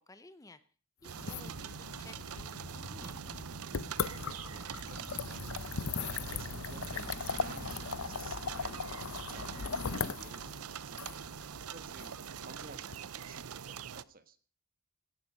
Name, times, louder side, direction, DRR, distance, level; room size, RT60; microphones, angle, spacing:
voice 1, 0.1-0.6 1.0-3.8, left 2 dB, 15° left, 13 dB, 0.6 m, -56 dB
sound 1, 1.0-14.0, right 8 dB, 85° right, 0.6 m, -44 dB
sound 2, 1.1-13.0, left 5 dB, 70° left, 0.7 m, -39 dB
sound 3, 2.6-9.1, equal, 65° right, 2.5 m, -51 dB
voice 2, 4.2-14.4, right 4 dB, 40° right, 12 dB, 1.3 m, -54 dB
18.0 x 12.0 x 5.3 m, 0.41 s
head